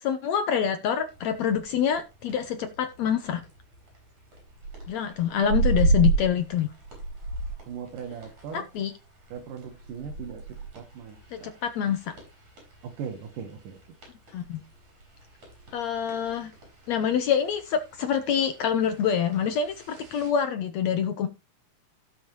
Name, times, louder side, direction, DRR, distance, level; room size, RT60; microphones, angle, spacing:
voice 1, 0.0-3.4 4.9-6.7 8.5-8.9 11.3-12.1 14.3-14.6 15.7-16.5 16.9-21.3, left 8 dB, 70° left, 9 dB, 1.8 m, -26 dB
sound 1, 1.0-20.3, right 3 dB, 60° right, 7.2 m, -34 dB
voice 2, 7.7-8.7 9.3-10.4 10.8-11.6 12.8-13.8, right 7 dB, 90° right, 5 dB, 2.9 m, -39 dB
17.0 x 7.2 x 3.0 m, 0.26 s
omnidirectional pair, 3.6 m